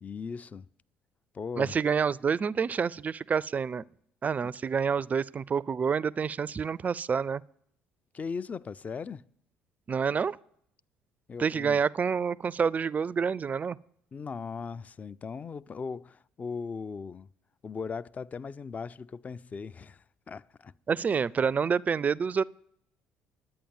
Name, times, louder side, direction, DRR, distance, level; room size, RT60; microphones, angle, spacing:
voice 1, 0.0-0.7 1.3-1.7 8.1-9.2 11.3-11.8 14.1-17.3 17.6-21.1, left 5 dB, 35° left, 0.4 m, -38 dB
voice 2, 1.6-3.8 4.2-7.4 9.9-10.4 11.4-13.8 20.9-22.4, right 6 dB, 35° right, 0.4 m, -28 dB
10.5 x 8.7 x 7.1 m
hypercardioid pair, 60°, 5 cm